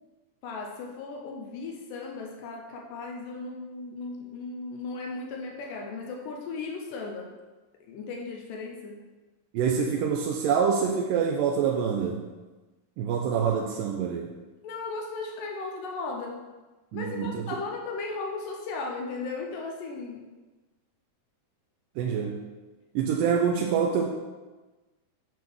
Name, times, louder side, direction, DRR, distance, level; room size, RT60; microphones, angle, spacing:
voice 1, 0.4-7.3 7.8-9.0 14.6-16.4 16.9-20.3, left 3 dB, 80° left, 1 dB, 2.3 m, -36 dB
voice 2, 9.5-12.2 13.0-14.3 16.9-17.6 22.0-22.3 23.0-24.1, right 7 dB, 80° right, 0 dB, 2.2 m, -26 dB
7.7 x 3.6 x 6.1 m, 1.2 s
omnidirectional pair, 4.0 m